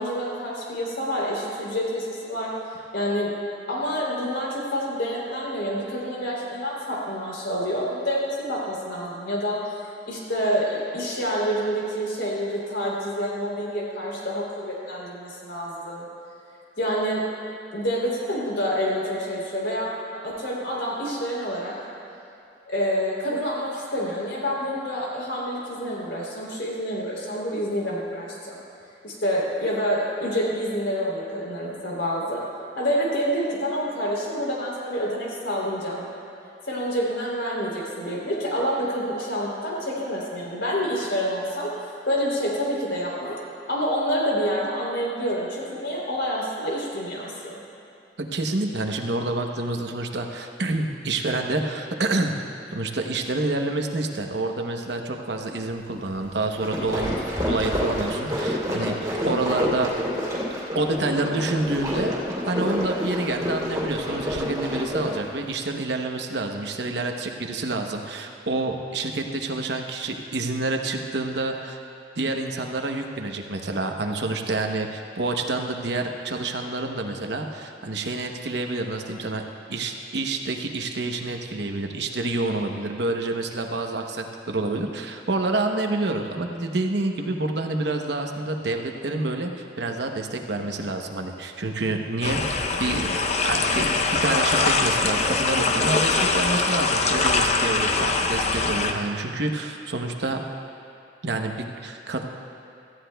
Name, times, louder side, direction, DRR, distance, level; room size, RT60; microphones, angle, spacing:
voice 1, 0.0-2.5 2.9-3.3 3.7-9.6 10.1-16.1 16.8-17.2 17.7-19.9 20.2-21.7 22.7-28.6 29.0-32.4 32.8-36.0 36.7-41.7 42.0-43.3 43.7-47.5 64.7-64.8, equal, 85° left, -4 dB, 3.2 m, -27 dB
voice 2, 48.2-52.4 52.7-57.2 57.4-59.9 60.7-62.1 62.4-71.8 72.2-79.4 79.7-93.1 93.4-100.5 101.2-102.2, right 2 dB, 70° right, 3 dB, 0.9 m, -28 dB
sound 1, 56.4-65.3, left 1 dB, 20° right, 2.9 m, -28 dB
sound 2, 92.2-98.9, left 3 dB, 40° left, 0.6 m, -23 dB
17.5 x 14.0 x 2.3 m, 2.7 s
head